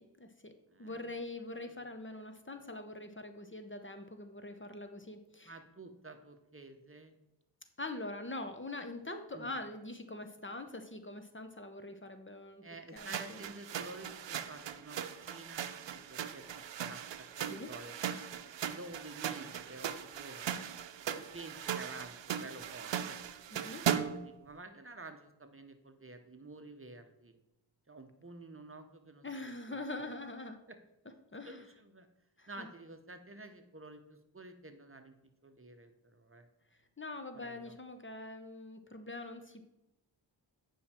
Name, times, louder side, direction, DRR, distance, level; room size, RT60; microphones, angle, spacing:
voice 1, 0.0-0.5 0.8-5.5 7.8-12.6 12.9-13.4 17.4-17.7 23.5-23.9 29.2-30.6 31.3-31.6 32.4-32.7 37.0-39.6, left 2 dB, 25° left, 7 dB, 1.0 m, -43 dB
voice 2, 0.7-1.2 5.4-7.1 9.3-9.5 12.6-18.0 18.7-20.5 21.1-23.2 23.6-27.4 27.9-30.0 30.7-30.8 31.4-32.1 32.5-35.2 35.4-36.5 37.3-37.8, right 2 dB, 30° right, 7 dB, 1.0 m, -50 dB
sound 1, 13.0-24.3, right 9 dB, 75° right, 0.7 m, -39 dB
9.3 x 5.5 x 4.4 m, 0.91 s
cardioid pair, 60°, 45 cm